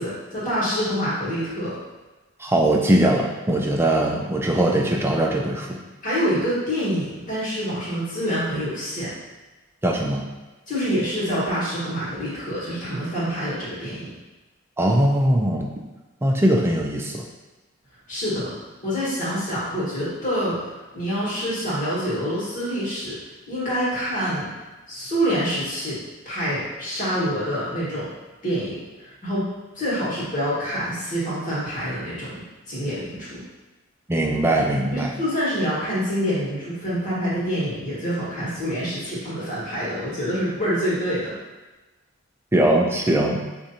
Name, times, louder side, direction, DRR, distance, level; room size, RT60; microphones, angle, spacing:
voice 1, 0.0-1.8 6.0-9.1 10.7-14.1 18.1-18.5 18.8-20.6 20.9-23.1 23.5-24.5 24.9-26.0 26.2-28.1 28.4-29.5 29.7-32.4 32.7-33.4 34.9-41.3, equal, 40° left, -9 dB, 1.3 m, -26 dB
voice 2, 2.4-5.8 9.8-10.3 14.8-15.7 16.2-17.2 34.1-35.1 42.5-43.5, right 1 dB, 10° right, 0 dB, 0.3 m, -21 dB
4.7 x 2.5 x 2.7 m, 1.2 s
head